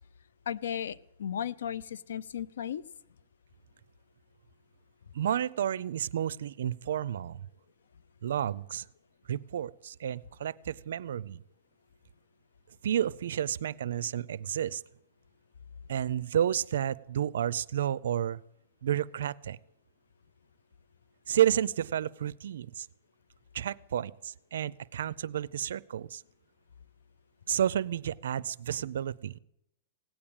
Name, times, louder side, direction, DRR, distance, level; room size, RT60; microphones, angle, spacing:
voice 1, 0.5-2.8, left 9 dB, 90° left, 16 dB, 0.5 m, -35 dB
voice 2, 5.1-7.5 8.2-8.8 9.3-11.4 12.8-14.8 15.9-18.4 18.8-19.6 21.3-22.9 23.5-26.2 27.5-29.4, right 10 dB, 80° right, 21 dB, 0.5 m, -31 dB
17.0 x 8.7 x 8.8 m, 0.82 s
hypercardioid pair, 145°, 0 cm